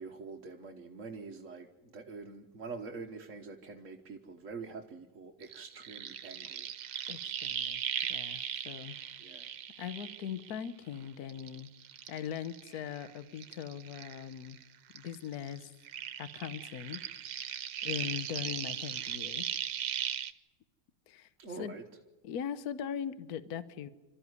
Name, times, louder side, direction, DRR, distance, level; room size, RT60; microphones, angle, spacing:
voice 1, 0.0-6.7 9.2-9.5 21.4-21.8, right 4 dB, 45° right, 1 dB, 1.5 m, -45 dB
sound 1, 5.4-10.9 11.3-14.6 14.9-20.3, right 10 dB, 80° right, 1.6 m, -38 dB
voice 2, 7.1-7.8 8.1-9.0 9.3-9.4 9.8-11.7 12.1-14.6 14.9-15.7 16.2-17.0 17.3-19.4 21.1-21.3 21.6-21.7 22.2-23.9, left 9 dB, 60° left, 13 dB, 1.4 m, -40 dB
27.0 x 13.5 x 9.6 m, 1.1 s
omnidirectional pair, 1.9 m